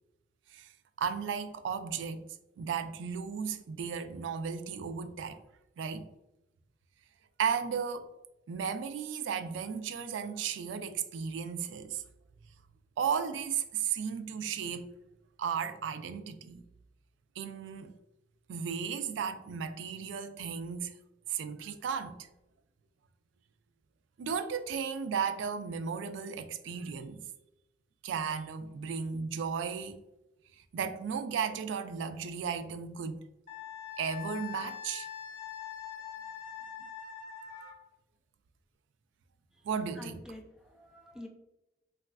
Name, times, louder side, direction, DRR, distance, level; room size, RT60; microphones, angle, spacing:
voice 1, 1.0-5.4 5.8-6.1 7.4-8.1 8.5-12.0 13.0-14.9 15.4-16.6 17.4-17.9 18.5-20.9 21.3-22.3 24.2-27.2 28.0-30.0 30.7-33.2 34.0-35.1 36.8-36.9 39.6-40.2, right 6 dB, 85° right, 0.3 m, -35 dB
Wind instrument woodwind instrument, 33.5-37.8, left 8 dB, 45° left, 0.7 m, -43 dB
voice 2, 40.0-41.3, left 1 dB, 5° right, 0.3 m, -47 dB
3.9 x 2.4 x 2.2 m
head